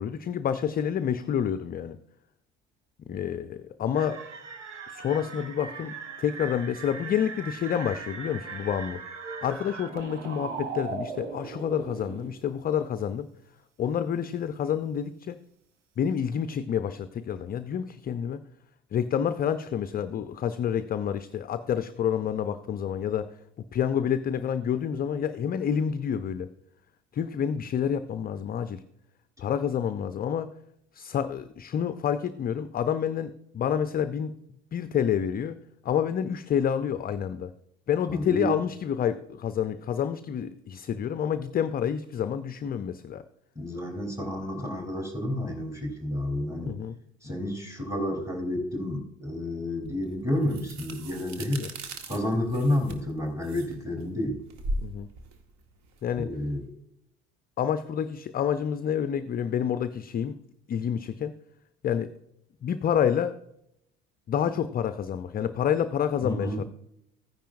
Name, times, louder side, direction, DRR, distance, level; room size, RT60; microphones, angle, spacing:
voice 1, 0.0-2.0 3.1-4.2 4.9-9.0 9.4-13.3 13.8-15.4 16.0-18.4 18.9-23.3 23.7-26.5 27.1-28.8 29.4-30.5 30.9-34.3 34.7-35.6 35.8-37.5 37.9-43.2 46.7-47.0 51.6-51.7 54.8-55.1 56.0-56.3 57.6-60.4 60.7-61.3 61.8-62.1 62.6-63.4 64.3-66.6, left 8 dB, 25° left, 11 dB, 0.5 m, -28 dB
sound 1, 3.9-12.3, right 5 dB, 80° right, 1.1 m, -39 dB
voice 2, 38.1-38.5 43.6-46.8 47.2-51.6 52.1-54.4 56.2-56.7 66.2-66.6, left 1 dB, 10° right, 1 dB, 3.6 m, -30 dB
sound 2, 49.8-56.6, right 1 dB, 50° right, 1.5 m, -39 dB
14.5 x 10.0 x 2.6 m, 0.76 s
figure-of-eight pair, 60°, 36 cm